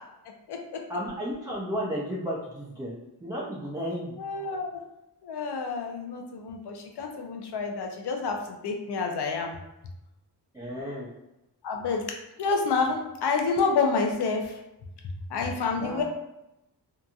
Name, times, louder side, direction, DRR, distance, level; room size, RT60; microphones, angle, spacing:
voice 1, 0.9-4.2 10.5-11.1 15.7-16.0, equal, 10° right, -6 dB, 0.3 m, -33 dB
voice 2, 4.2-4.8 5.2-8.4 8.6-9.5 11.6-12.0 12.4-14.6 15.3-16.0, left 4 dB, 75° left, 2 dB, 0.6 m, -28 dB
2.8 x 2.5 x 2.3 m, 0.91 s
wide cardioid pair, 170°, 41 cm